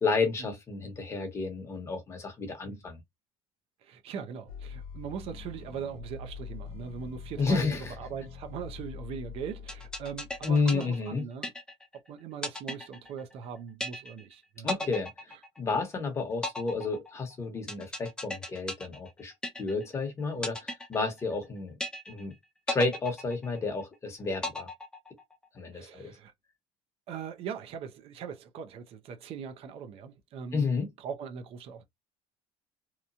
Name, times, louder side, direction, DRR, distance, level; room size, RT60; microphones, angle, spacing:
voice 1, 0.0-3.0 7.4-7.9 10.4-11.2 14.6-15.1 15.6-19.3 19.6-21.7 22.1-22.3 22.7-24.7 25.5-26.1 30.5-30.9, left 4 dB, 20° left, 1.0 m, -31 dB
voice 2, 3.8-11.5 12.1-14.9 15.3-15.4 25.7-26.3 27.1-30.7 31.0-31.8, right 7 dB, 50° right, 0.6 m, -40 dB
sound 1, 4.5-10.7, left 6 dB, 60° left, 0.8 m, -44 dB
sound 2, 9.7-12.0 12.4-13.5 13.8-14.3 14.7-15.9 16.4-20.0 20.4-21.5 21.8-22.3 22.7-23.9 24.4-25.4, left 1 dB, 5° left, 0.5 m, -36 dB
2.9 x 2.2 x 2.5 m
cardioid pair, 155°, 12 cm